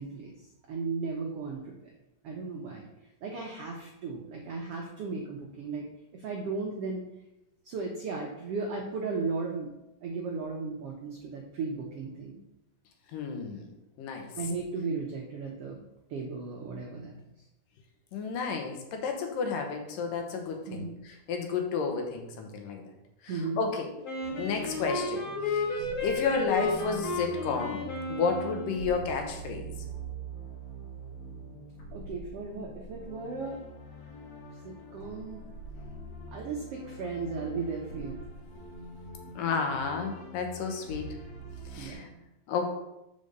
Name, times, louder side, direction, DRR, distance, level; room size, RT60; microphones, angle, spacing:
voice 1, 0.0-1.9 2.2-2.9 3.2-5.9 6.1-7.0 7.6-9.7 10.0-12.4 14.4-15.8 16.1-17.1 20.7-21.0 23.3-23.6 31.9-33.6 34.6-35.4 36.3-38.2 38.6-38.7 41.8-42.2, right 4 dB, 85° right, -1 dB, 1.3 m, -36 dB
voice 2, 13.1-13.7 14.0-14.3 18.1-20.9 21.3-22.8 23.6-23.9 24.3-27.8 28.1-29.7 39.4-41.1 41.7-42.1 42.5-42.7, left 5 dB, 75° left, 4 dB, 2.5 m, -31 dB
Wind instrument woodwind instrument, 24.0-29.1, left 2 dB, 40° left, 2.7 m, -33 dB
sound 1, 24.2-41.9, right 1 dB, 60° left, 2.6 m, -44 dB
5.4 x 5.1 x 6.5 m, 0.91 s
omnidirectional pair, 4.0 m